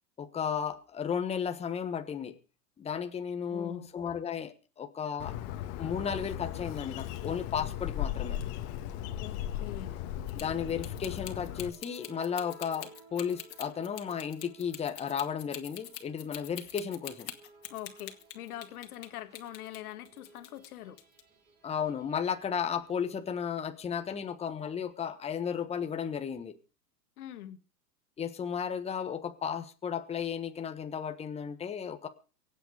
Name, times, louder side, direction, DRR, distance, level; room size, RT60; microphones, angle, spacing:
voice 1, 0.2-2.4 2.8-5.3 5.8-8.4 10.3-17.3 21.6-26.6 28.2-32.1, left 7 dB, 10° left, 1.3 m, -34 dB
voice 2, 3.5-3.9 9.2-10.0 17.7-21.0 27.2-27.6, left 13 dB, 60° left, 2.0 m, -43 dB
Bird, 5.2-11.7, left 12 dB, 40° left, 1.8 m, -37 dB
sound 1, 10.3-19.1 19.3-20.7 21.0-21.2, left 10 dB, 75° left, 2.4 m, -44 dB
sound 2, 11.3-23.2, right 3 dB, 20° right, 5.2 m, -58 dB
24.0 x 8.2 x 5.1 m
hypercardioid pair, 125°, 50 cm